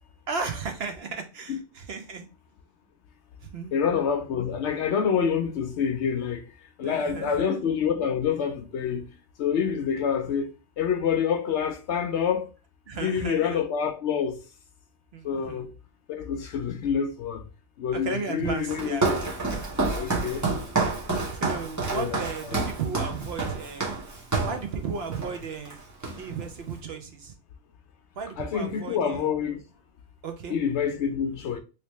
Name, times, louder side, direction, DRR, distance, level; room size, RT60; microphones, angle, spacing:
voice 1, 0.3-2.3 3.4-3.8 6.8-7.5 12.9-13.6 15.1-15.7 17.9-19.1 21.4-23.9 24.4-25.8 26.2-27.3 28.2-29.3 30.2-30.6, right 5 dB, 60° right, 0.7 m, -34 dB
voice 2, 3.7-6.4 6.8-9.1 9.4-10.5 10.8-12.5 13.0-14.4 15.2-15.7 16.1-17.4 17.8-19.0 19.9-20.5 21.9-22.2 22.5-22.6 28.4-29.6 30.5-31.6, left 7 dB, 65° left, 0.7 m, -27 dB
Walk footsteps, 18.7-24.6 25.1-25.4 25.7-26.5, right 3 dB, 20° right, 0.5 m, -28 dB
3.2 x 2.9 x 2.9 m
omnidirectional pair, 1.4 m